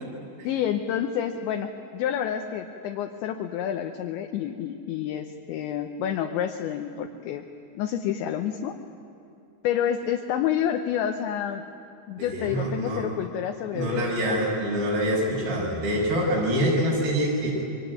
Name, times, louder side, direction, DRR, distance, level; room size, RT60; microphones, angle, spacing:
voice 1, 0.4-7.4 7.7-8.7 9.6-11.6 12.1-14.4, left 9 dB, 75° left, 4 dB, 3.0 m, -29 dB
voice 2, 12.2-13.0 13.7-17.5, equal, 85° right, -3 dB, 8.7 m, -25 dB
27.0 x 23.5 x 9.3 m, 2.7 s
omnidirectional pair, 5.8 m